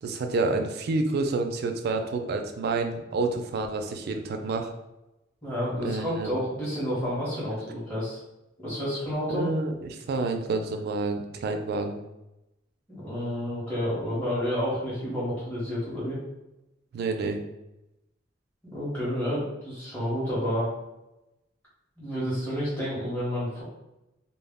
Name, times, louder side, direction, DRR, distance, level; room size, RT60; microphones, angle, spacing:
voice 1, 0.0-4.7 5.8-6.4 9.3-12.0 16.9-17.4, right 3 dB, 55° right, 5 dB, 0.3 m, -29 dB
voice 2, 5.4-8.2 8.6-9.5 12.9-16.2 18.7-20.7 22.0-23.6, equal, 10° left, -10 dB, 0.8 m, -30 dB
2.1 x 2.0 x 3.4 m, 0.94 s
head